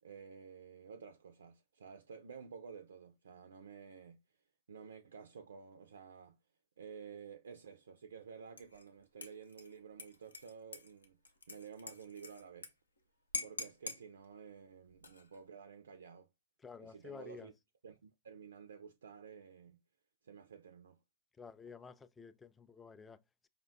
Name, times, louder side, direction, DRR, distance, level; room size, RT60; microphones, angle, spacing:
voice 1, 0.0-4.4 4.7-6.4 6.8-11.2 11.5-12.7 13.4-16.3 16.8-17.5 17.8-19.8 20.2-21.0, right 6 dB, 65° right, 0.3 m, -52 dB
Dishes pots and pans / Liquid, 8.6-8.9 9.2-12.7 13.0-13.1 13.3-14.0 14.9-15.4, left 3 dB, 80° left, 0.5 m, -45 dB
voice 2, 16.6-17.5 21.4-23.5, left 5 dB, 15° left, 0.3 m, -52 dB
5.0 x 2.1 x 2.5 m
figure-of-eight pair, 100°, 0 cm